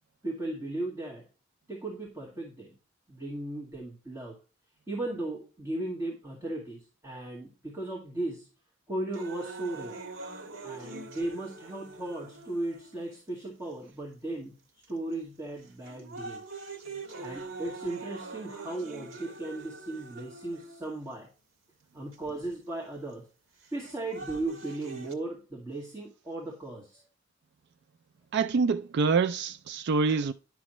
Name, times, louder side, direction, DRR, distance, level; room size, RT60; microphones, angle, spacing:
voice 1, 0.2-1.3 1.7-2.7 3.1-4.3 4.9-8.5 8.9-10.0 10.6-14.5 14.9-16.4 17.2-21.3 21.9-23.2 23.7-27.0, right 2 dB, 15° right, 2.0 m, -36 dB
sound 1, 9.1-13.2 13.9-14.0 14.8-15.1 15.6-21.1 22.1-22.2 23.6-25.1, right 3 dB, 80° right, 1.6 m, -43 dB
voice 2, 28.3-30.3, right 4 dB, 60° right, 0.4 m, -26 dB
11.0 x 6.1 x 3.1 m
head